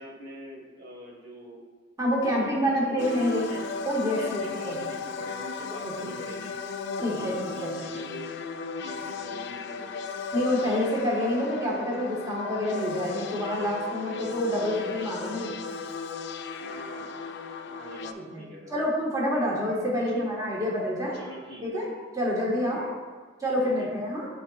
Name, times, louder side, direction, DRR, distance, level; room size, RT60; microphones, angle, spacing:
voice 1, 0.0-1.6 2.2-3.6 4.2-6.5 7.1-8.4 8.8-10.0 16.6-17.3 17.6-18.8 20.1-20.3 21.1-21.8 22.7-23.0 23.6-23.9, equal, 60° right, -2 dB, 1.5 m, -43 dB
voice 2, 2.0-3.4 3.8-4.8 5.8-6.1 7.0-7.8 10.3-15.5 18.1-18.4 18.7-21.2 21.6-22.9 23.4-24.3, equal, 20° right, -5 dB, 1.4 m, -27 dB
sound 1, 3.0-18.1, left 5 dB, 65° left, 0.4 m, -36 dB
10.5 x 4.1 x 2.4 m, 1.4 s
head